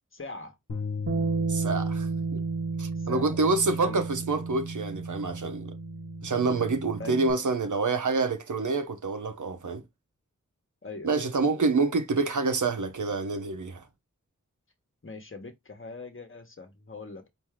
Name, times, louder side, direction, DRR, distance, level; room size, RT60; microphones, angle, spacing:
voice 1, 0.1-0.6 3.0-4.0 7.0-7.4 10.8-11.2 15.0-17.3, left 3 dB, 45° left, 1.2 m, -42 dB
sound 1, 0.7-6.9, left 5 dB, 70° left, 1.1 m, -39 dB
Bass guitar, 1.1-7.3, right 5 dB, 50° right, 0.9 m, -33 dB
voice 2, 1.5-2.4 2.8-5.7 6.2-9.8 11.0-13.9, right 3 dB, 80° right, 0.7 m, -27 dB
4.5 x 2.6 x 3.5 m
wide cardioid pair, 40°, 30 cm